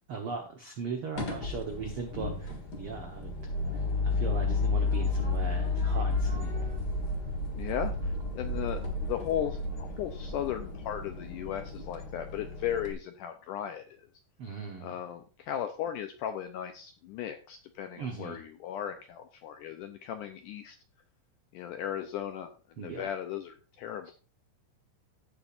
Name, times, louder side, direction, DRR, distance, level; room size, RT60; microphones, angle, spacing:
voice 1, 0.1-3.3 3.7-6.5 8.0-8.1 14.4-15.0 18.0-18.4 22.8-23.1 24.0-24.1, right 5 dB, 85° right, 3 dB, 1.2 m, -39 dB
sound 1, 1.2-12.9, left 3 dB, 45° left, 1.4 m, -32 dB
voice 2, 7.5-14.0 14.8-20.8 21.5-22.5 22.8-24.1, left 10 dB, 80° left, 7 dB, 1.8 m, -36 dB
16.0 x 7.1 x 2.5 m, 0.36 s
omnidirectional pair, 4.4 m